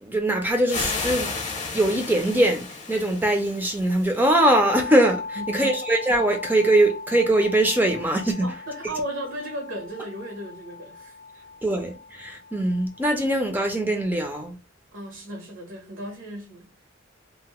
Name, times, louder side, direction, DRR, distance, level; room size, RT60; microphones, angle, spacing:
voice 1, 0.0-1.3 1.7-8.5 11.6-14.5, right 1 dB, 10° right, 0.4 m, -22 dB
sound 1, 0.7-4.3, left 4 dB, 35° left, 0.7 m, -33 dB
sound 2, 4.3-14.1, left 4 dB, 80° left, 0.5 m, -38 dB
voice 2, 5.3-5.7 8.4-11.5 14.9-16.7, right 1 dB, 75° right, 0.7 m, -35 dB
2.7 x 2.0 x 2.9 m
head